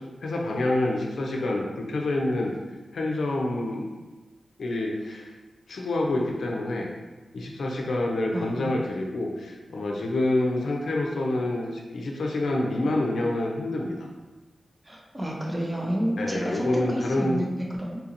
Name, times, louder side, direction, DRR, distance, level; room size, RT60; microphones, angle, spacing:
voice 1, 0.2-2.5 2.9-3.9 4.6-5.3 5.7-6.9 7.3-14.1 16.2-17.5, left 2 dB, 80° left, 0 dB, 0.5 m, -27 dB
voice 2, 8.3-8.7 14.9-18.0, equal, 15° right, -2 dB, 0.5 m, -30 dB
3.7 x 2.5 x 2.8 m, 1.2 s
wide cardioid pair, 155°, 0 cm